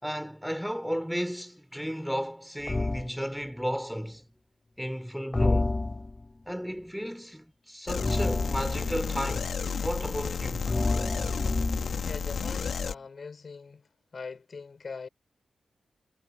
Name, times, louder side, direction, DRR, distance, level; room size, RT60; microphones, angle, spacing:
voice 1, 0.0-4.2 4.8-5.8 6.5-9.5 9.8-10.7, equal, ahead, 4.1 m, -34 dB
sound 1, 2.7-3.1 5.3-6.3 8.0-9.1 10.7-12.0, left 2 dB, 30° left, 3.6 m, -28 dB
sound 2, 7.9-12.9, left 6 dB, 75° left, 1.8 m, -32 dB
voice 2, 12.0-15.1, left 4 dB, 55° left, 6.0 m, -42 dB
cardioid pair, 60°, 0 cm